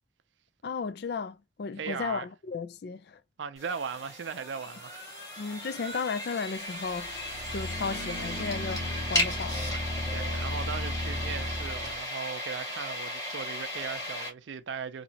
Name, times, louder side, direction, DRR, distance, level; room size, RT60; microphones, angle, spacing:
voice 1, 0.6-3.2 5.4-7.2 7.5-9.7, left 5 dB, 60° left, 0.4 m, -34 dB
voice 2, 1.8-2.3 3.4-5.0 10.1-15.0, right 6 dB, 80° right, 0.4 m, -38 dB
sound 1, 3.6-14.3, left 1 dB, 20° left, 1.4 m, -35 dB
sound 2, 6.9-12.0, left 1 dB, 90° left, 0.9 m, -36 dB
3.0 x 2.7 x 2.7 m
head